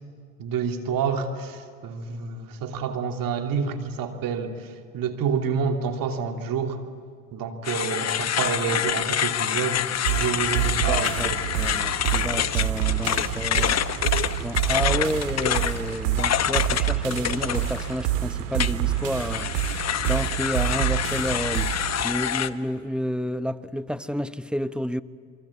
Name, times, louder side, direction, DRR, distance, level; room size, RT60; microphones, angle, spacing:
voice 1, 0.4-6.8 7.3-9.8 10.1-11.4, right 6 dB, 60° right, 3.0 m, -28 dB
sound 1, 7.6-18.1 18.6-22.5, left 10 dB, 45° left, 1.1 m, -27 dB
sound 2, 10.0-22.0, right 12 dB, 90° right, 1.9 m, -27 dB
voice 2, 10.9-11.3 11.6-13.8 14.4-19.5 20.1-21.7 22.0-25.0, equal, ahead, 1.0 m, -30 dB
28.5 x 23.5 x 8.6 m
hypercardioid pair, 65°, 37 cm